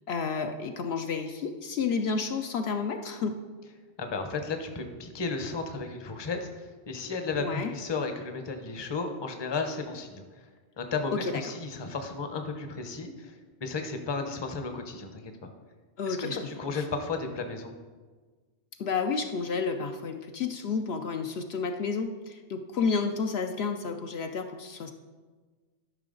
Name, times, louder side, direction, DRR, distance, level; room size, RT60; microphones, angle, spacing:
voice 1, 0.1-3.4 7.4-7.7 11.1-11.4 16.0-16.4 16.7-16.8 18.8-24.9, left 5 dB, 65° left, 5 dB, 0.8 m, -31 dB
voice 2, 4.0-10.2 10.8-13.4 13.6-15.5 16.1-17.7, left 4 dB, 25° left, 6 dB, 0.7 m, -34 dB
13.0 x 5.7 x 3.8 m, 1.4 s
omnidirectional pair, 1.2 m